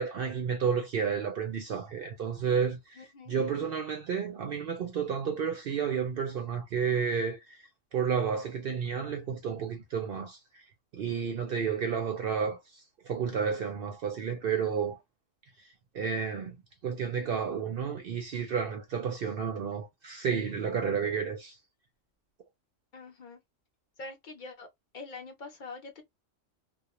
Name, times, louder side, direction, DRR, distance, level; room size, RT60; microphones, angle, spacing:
voice 1, 0.0-3.0 3.3-7.6 7.9-10.6 10.9-15.0 15.9-16.6 16.8-21.6, right 6 dB, 60° right, 0.6 m, -31 dB
voice 2, 3.0-3.3 22.9-23.4 24.0-24.7 24.9-26.0, left 3 dB, 50° left, 0.6 m, -44 dB
2.3 x 2.1 x 2.9 m
omnidirectional pair, 1.3 m